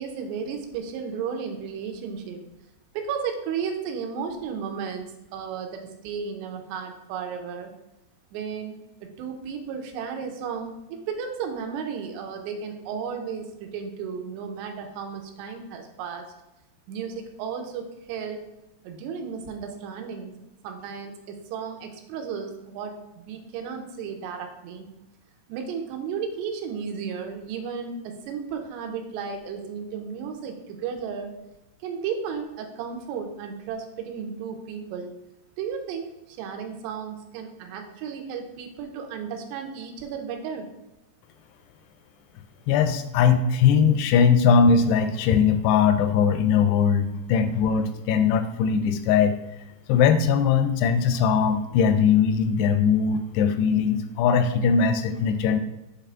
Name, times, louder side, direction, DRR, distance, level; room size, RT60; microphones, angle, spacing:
voice 1, 0.0-2.4 2.9-7.7 8.3-16.3 16.9-18.4 18.8-20.3 20.6-24.9 25.5-31.3 31.8-35.1 35.6-40.7, right 6 dB, 90° right, 4 dB, 2.9 m, -34 dB
voice 2, 42.7-49.4 49.9-55.6, left 6 dB, 85° left, 9 dB, 2.5 m, -20 dB
8.1 x 3.4 x 3.6 m, 0.96 s
omnidirectional pair, 4.8 m